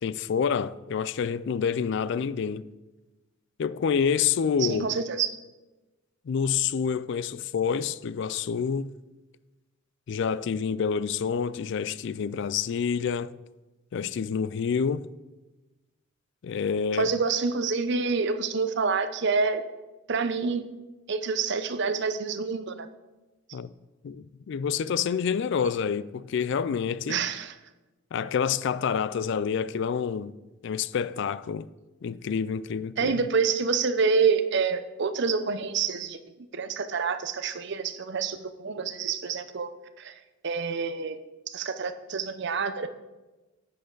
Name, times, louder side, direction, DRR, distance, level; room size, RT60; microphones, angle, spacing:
voice 1, 0.0-2.7 3.6-4.9 6.3-8.9 10.1-13.3 13.9-15.1 16.4-17.1 23.5-23.7 24.0-27.3 28.1-30.3 30.6-31.7 32.0-33.2, left 6 dB, 55° left, 0.3 m, -28 dB
voice 2, 4.6-5.4 17.0-19.6 20.1-20.6 21.1-22.9 27.1-27.5 33.0-36.2 36.5-39.7 40.0-40.1 40.4-41.2 41.5-42.9, right 5 dB, 55° right, 0.6 m, -27 dB
10.0 x 8.6 x 3.9 m
head